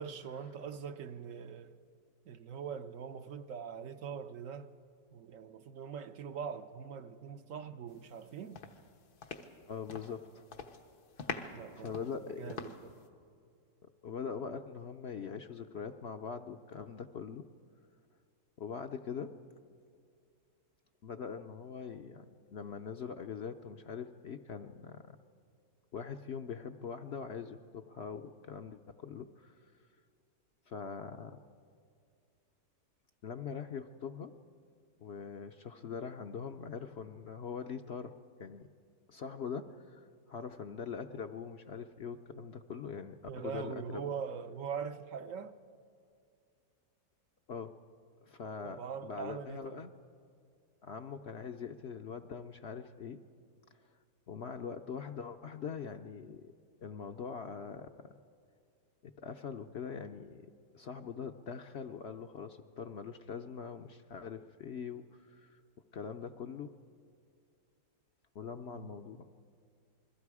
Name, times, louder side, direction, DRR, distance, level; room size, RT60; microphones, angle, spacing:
voice 1, 0.0-1.8 2.3-4.7 5.1-8.6 11.5-12.9 43.3-45.6 48.6-49.9 68.7-69.1, right 7 dB, 65° right, 1.0 m, -42 dB
sound 1, 8.0-8.3 8.6-10.2 10.5-10.8 11.2-13.0, left 5 dB, 85° left, 1.7 m, -43 dB
voice 2, 9.7-10.4 11.2-11.3 11.8-12.7 14.0-17.4 18.6-19.3 21.0-25.2 25.9-29.5 30.7-31.4 33.2-34.3 35.0-38.1 38.4-38.7 39.1-44.1 47.5-47.7 48.3-49.9 50.8-53.2 54.3-56.5 56.8-58.1 59.2-60.5 60.7-65.6 65.9-66.7 68.3-69.3, left 6 dB, 60° left, 0.7 m, -42 dB
28.5 x 21.5 x 4.8 m
omnidirectional pair, 1.6 m